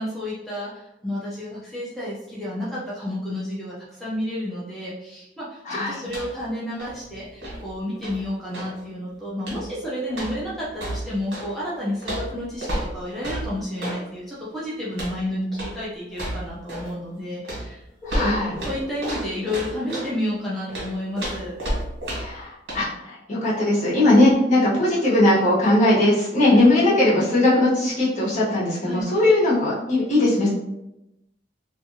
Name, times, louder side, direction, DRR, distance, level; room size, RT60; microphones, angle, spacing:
voice 1, 0.0-17.8 18.1-21.5 26.5-26.7 28.8-29.1, left 1 dB, ahead, -8 dB, 0.6 m, -31 dB
sound 1, 6.0-6.5 6.7-8.8 9.4-9.8 10.1-11.5 12.0-14.0 14.9-15.2 15.5-15.8 16.1-16.9 17.4-20.1 20.7-22.4 22.7-22.8, equal, 70° right, 1.3 m, -32 dB
voice 2, 18.1-18.5 22.1-30.5, left 1 dB, 45° left, -8 dB, 1.1 m, -19 dB
2.6 x 2.5 x 2.7 m, 0.88 s
head